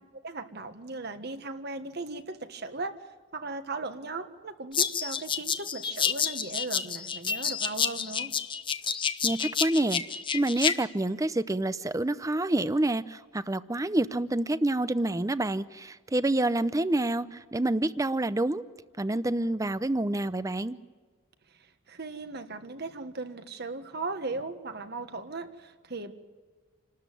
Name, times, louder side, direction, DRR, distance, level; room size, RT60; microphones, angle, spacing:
voice 1, 0.0-2.9 3.3-8.3 21.9-26.1, right 3 dB, 55° right, 8 dB, 1.5 m, -37 dB
sound 1, 4.7-10.7, left 7 dB, 25° left, 0.9 m, -29 dB
voice 2, 9.2-10.0 10.3-18.6 19.0-20.8, right 1 dB, 15° right, 15 dB, 0.6 m, -27 dB
28.0 x 13.0 x 9.2 m, 1.4 s
head